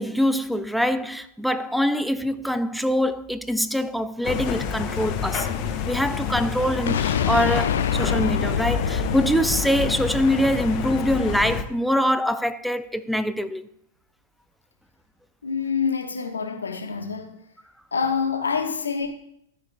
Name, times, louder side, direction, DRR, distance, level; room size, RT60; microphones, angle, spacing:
voice 1, 0.0-5.5 5.9-13.7, equal, ahead, 0.4 m, -24 dB
sound 1, 4.2-11.6, left 6 dB, 40° left, 0.8 m, -29 dB
sound 2, 6.9-10.8, left 8 dB, 70° left, 0.5 m, -26 dB
voice 2, 15.4-17.4 17.9-19.1, left 6 dB, 85° left, 1.2 m, -26 dB
13.0 x 4.5 x 3.3 m
hypercardioid pair, 105°, 0 cm